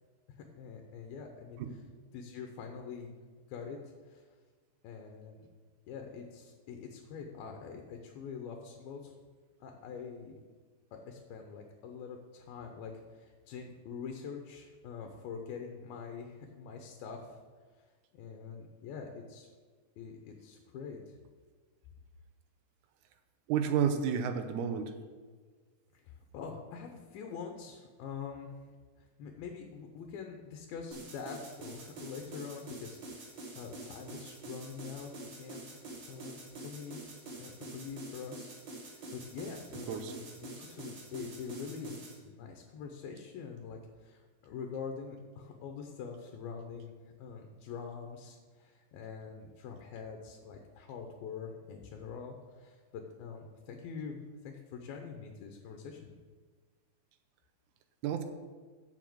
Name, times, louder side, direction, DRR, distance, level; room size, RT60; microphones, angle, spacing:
voice 1, 0.3-1.6 2.1-3.1 3.5-3.8 4.1-4.2 4.8-5.5 5.9-9.1 9.6-10.4 10.9-17.4 18.1-19.5 20.0-21.1 25.9-28.5 29.2-35.1 35.4-37.0 37.3-38.6 38.8-42.0 42.2-46.9 47.2-54.2 54.4-56.1, left 6 dB, 80° left, 3 dB, 2.7 m, -45 dB
voice 2, 23.5-24.9 39.9-40.1 58.0-58.2, right 7 dB, 75° right, 7 dB, 1.9 m, -31 dB
sound 1, 30.9-42.2, right 2 dB, 45° right, 1.8 m, -46 dB
7.2 x 6.5 x 7.8 m, 1.5 s
omnidirectional pair, 4.3 m